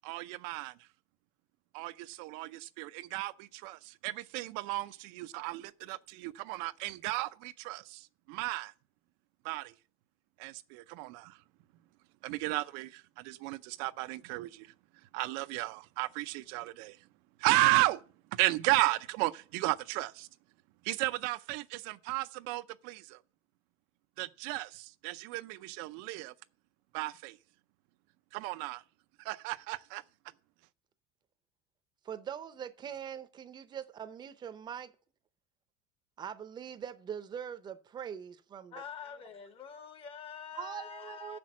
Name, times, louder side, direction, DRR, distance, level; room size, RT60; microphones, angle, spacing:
voice 1, 0.0-0.7 1.7-8.7 9.4-9.7 10.4-11.4 12.2-14.7 15.1-17.0 17.4-18.0 18.3-20.3 20.8-23.2 24.2-26.3 26.9-27.4 28.3-28.8 29.2-30.0, right 20 dB, 70° right, 0.6 m, -34 dB
voice 2, 32.0-34.9 36.2-38.8 40.6-41.4, right 8 dB, 25° right, 0.7 m, -42 dB
voice 3, 38.7-41.4, left 7 dB, 35° left, 1.0 m, -46 dB
7.2 x 6.0 x 7.3 m
cardioid pair, 150°, 17 cm